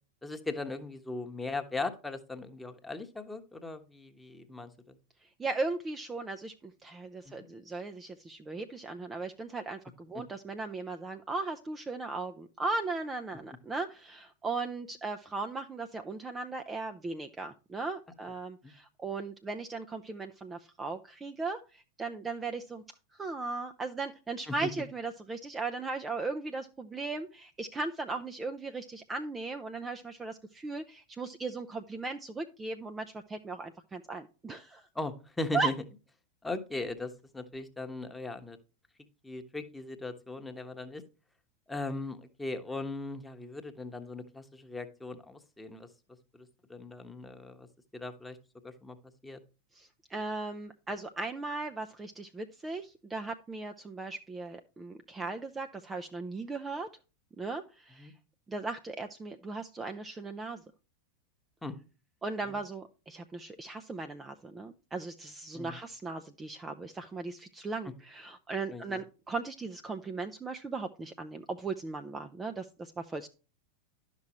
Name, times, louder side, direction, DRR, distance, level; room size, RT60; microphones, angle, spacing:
voice 1, 0.2-5.0 7.2-7.4 18.6-18.7 24.5-24.7 34.9-35.7 36.4-38.6 39.2-41.0 41.7-45.9 46.3-47.7 47.9-48.4 48.6-49.0 49.2-49.4 58.0-58.1 61.6-61.8 62.5-62.6 65.5-65.8 68.7-69.0, left 2 dB, 5° left, 7 dB, 1.2 m, -38 dB
voice 2, 5.4-22.8 23.2-34.9 35.5-35.7 49.7-56.9 57.4-58.1 58.5-60.6 62.2-73.3, right 3 dB, 15° right, 6 dB, 0.6 m, -37 dB
11.5 x 6.0 x 3.0 m, 0.33 s
figure-of-eight pair, 90°, 0 cm